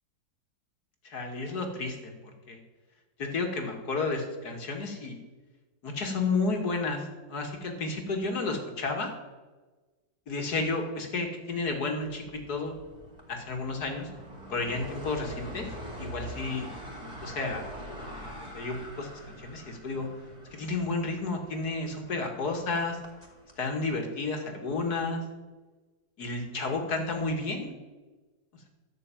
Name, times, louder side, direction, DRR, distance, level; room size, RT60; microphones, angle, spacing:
voice 1, 1.0-2.1 2.5-2.6 3.2-5.2 5.8-9.1 10.3-12.8 13.3-14.1 14.5-15.7 16.0-16.7 17.0-17.6 18.0-20.1 20.5-23.0 23.6-25.2 26.2-27.7, left 3 dB, 55° left, 3 dB, 2.4 m, -32 dB
sound 1, 12.1-23.6, equal, 20° right, 2.5 m, -44 dB
13.0 x 6.6 x 9.0 m, 1.3 s
omnidirectional pair, 2.1 m